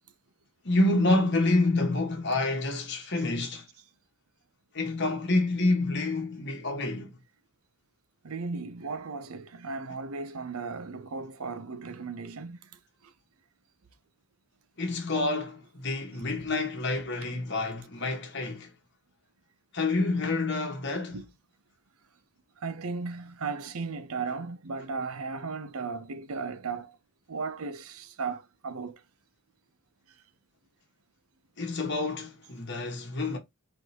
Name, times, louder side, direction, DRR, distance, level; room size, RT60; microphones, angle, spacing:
voice 1, 0.6-3.7 4.7-7.2 14.8-18.7 19.7-21.2 31.6-33.4, left 2 dB, 55° left, 1.5 m, -28 dB
voice 2, 8.2-12.6 21.1-21.2 22.6-27.0 27.3-29.0, right 4 dB, 85° right, 0.7 m, -36 dB
4.5 x 3.8 x 2.9 m
head